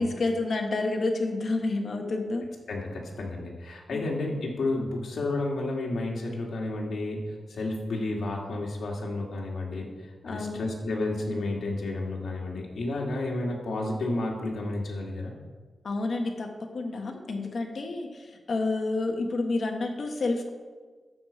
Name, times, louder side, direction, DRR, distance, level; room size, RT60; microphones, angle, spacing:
voice 1, 0.0-2.5 3.9-4.1 10.2-10.7 15.8-20.5, left 2 dB, 50° left, 3 dB, 1.4 m, -29 dB
voice 2, 2.7-7.2 7.5-9.9 10.3-15.3, left 2 dB, 75° left, -1 dB, 2.2 m, -31 dB
12.0 x 5.0 x 7.1 m, 1.4 s
wide cardioid pair, 170°, 0 cm